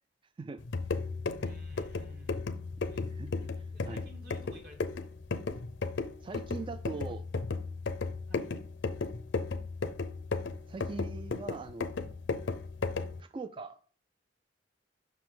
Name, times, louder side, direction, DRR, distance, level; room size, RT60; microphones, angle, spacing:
sound 1, 0.6-13.2, left 4 dB, 75° left, 0.6 m, -35 dB
voice 1, 1.3-2.5 2.8-3.4 3.7-4.9 8.3-8.5, right 1 dB, 55° right, 1 dB, 1.7 m, -55 dB
voice 2, 3.2-4.0 6.2-7.3 10.7-11.9 13.2-13.8, right 3 dB, 25° right, 9 dB, 0.3 m, -41 dB
5.9 x 4.8 x 3.8 m, 0.41 s
head